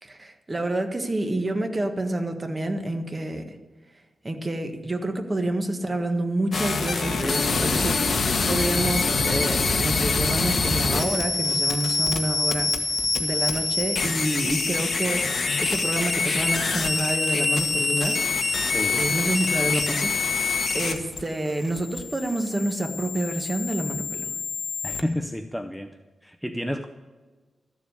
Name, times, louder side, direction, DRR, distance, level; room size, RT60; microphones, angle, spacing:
voice 1, 0.0-3.5 4.2-18.2 18.9-24.3, right 1 dB, 25° right, 6 dB, 1.5 m, -28 dB
sound 1, 6.5-25.0, left 4 dB, 55° left, 1.4 m, -25 dB
voice 2, 24.8-25.9 26.2-26.9, left 1 dB, ahead, 6 dB, 0.6 m, -30 dB
13.5 x 7.2 x 9.5 m, 1.3 s
wide cardioid pair, 105°, 0 cm